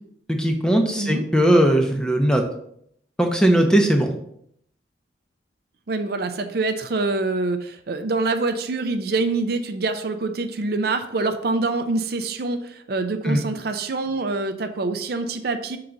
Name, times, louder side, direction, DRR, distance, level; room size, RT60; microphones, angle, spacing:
voice 1, 0.3-2.4 3.2-4.1 13.2-13.4, right 1 dB, 5° left, 3 dB, 0.7 m, -18 dB
voice 2, 5.9-15.8, right 3 dB, 55° right, 8 dB, 0.5 m, -25 dB
5.3 x 3.8 x 5.8 m, 0.70 s
head